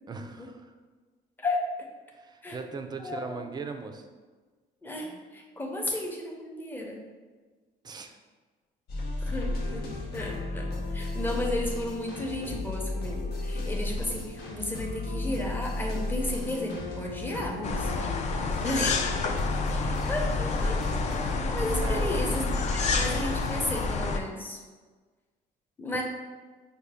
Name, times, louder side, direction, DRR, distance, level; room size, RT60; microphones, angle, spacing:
voice 1, 0.1-0.7 2.1-4.1 5.0-5.2 7.8-8.2 18.6-18.9 21.8-22.3 25.9-26.0, right 4 dB, 25° right, 6 dB, 0.4 m, -39 dB
voice 2, 4.8-7.0 9.3-9.9 10.1-10.7 10.9-17.9 18.6-18.9 20.1-21.0 21.5-24.6 25.8-26.0, left 1 dB, 10° left, -1 dB, 0.7 m, -33 dB
sound 1, 8.9-23.6, left 2 dB, 65° left, 0.8 m, -34 dB
sound 2, 17.6-24.2, left 4 dB, 45° left, 0.4 m, -29 dB
5.4 x 2.2 x 3.4 m, 1.4 s
cardioid pair, 110°, 17 cm